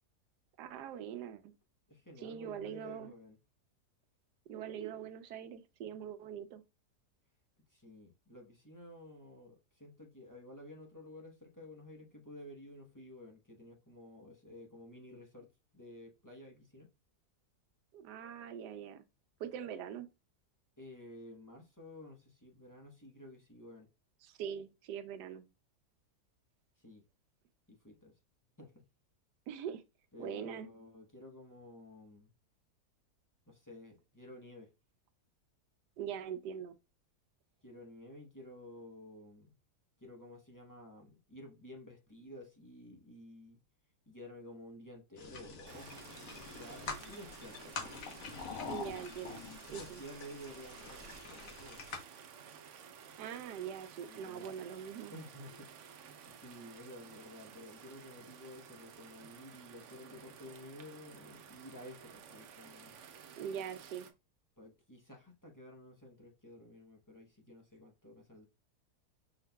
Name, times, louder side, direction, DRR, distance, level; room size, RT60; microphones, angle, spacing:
voice 1, 0.6-1.5 2.2-3.1 4.5-6.6 17.9-19.0 19.4-20.1 24.2-25.4 29.5-29.8 30.2-30.7 36.0-36.7 48.7-49.4 49.7-50.0 53.2-55.1 63.4-64.1, right 8 dB, 85° right, 1.2 m, -42 dB
voice 2, 1.9-3.4 7.7-16.9 20.8-23.9 26.8-27.0 27.7-28.1 28.6-28.8 30.1-32.3 33.5-34.7 37.6-39.5 40.0-43.6 44.1-48.0 49.7-52.0 54.1-54.5 55.1-63.0 64.6-68.5, left 1 dB, 20° left, 0.5 m, -52 dB
sound 1, 45.2-52.0, left 5 dB, 60° left, 1.3 m, -46 dB
sound 2, 45.7-64.1, right 7 dB, 65° right, 0.8 m, -54 dB
5.7 x 3.8 x 2.2 m
omnidirectional pair, 1.7 m